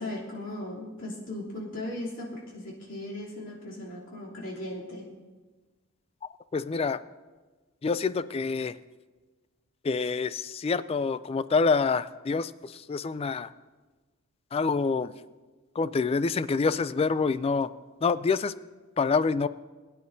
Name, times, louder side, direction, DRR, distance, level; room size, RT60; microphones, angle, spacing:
voice 1, 0.0-5.1, left 1 dB, 65° left, -6 dB, 3.1 m, -37 dB
voice 2, 6.5-7.0 7.8-8.8 9.8-13.5 14.5-15.1 15.8-17.7 18.0-18.5 19.0-19.5, left 4 dB, 30° left, 16 dB, 0.3 m, -26 dB
22.0 x 10.0 x 2.7 m, 1.3 s
head